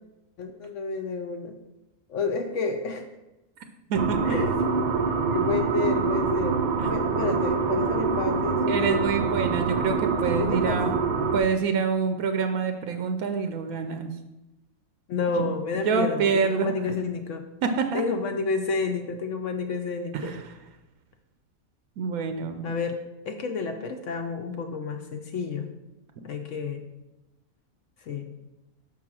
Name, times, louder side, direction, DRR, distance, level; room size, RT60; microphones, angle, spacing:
voice 1, 0.4-1.6 2.1-3.1 4.2-4.5 5.3-9.0 10.4-11.0 15.1-17.5 17.9-20.4 22.6-23.0 23.3-25.7 26.2-26.8 28.1-28.3, left 4 dB, 65° left, 5 dB, 0.9 m, -30 dB
sound 1, 3.9-11.4, right 5 dB, 65° right, 0.4 m, -25 dB
voice 2, 8.7-11.0 11.3-14.1 15.4-15.6 15.9-16.7 17.6-18.0 20.1-20.4 22.0-22.7, right 5 dB, 85° right, 7 dB, 1.0 m, -26 dB
6.2 x 3.8 x 6.0 m, 0.99 s
omnidirectional pair, 1.5 m